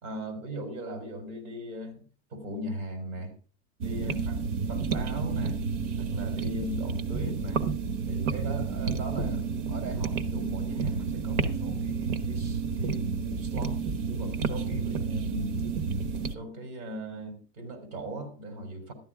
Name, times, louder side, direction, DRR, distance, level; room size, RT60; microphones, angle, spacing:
voice 1, 0.0-2.0 2.3-3.3 3.8-4.4 4.7-5.6 6.0-7.7 8.1-13.8 14.1-15.5 16.1-18.9, right 1 dB, 80° right, 5 dB, 3.9 m, -38 dB
sound 1, 3.8-16.4, right 5 dB, 60° right, 1.2 m, -30 dB
13.5 x 10.5 x 3.7 m, 0.39 s
supercardioid pair, 135°, 35 cm